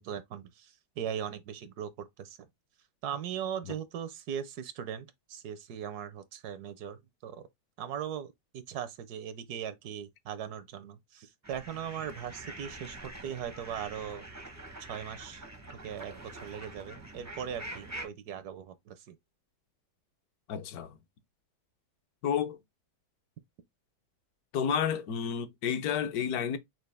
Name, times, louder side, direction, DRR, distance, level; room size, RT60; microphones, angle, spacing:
voice 1, 0.0-2.4 3.0-7.5 7.8-14.3 14.8-15.4 15.8-19.2, right 9 dB, 75° right, 1.1 m, -39 dB
sound 1, 11.4-18.1, right 1 dB, 20° right, 0.4 m, -45 dB
voice 2, 20.5-20.9 22.2-22.6 24.5-26.6, left 8 dB, 65° left, 1.2 m, -30 dB
6.1 x 2.3 x 3.3 m
omnidirectional pair, 1.8 m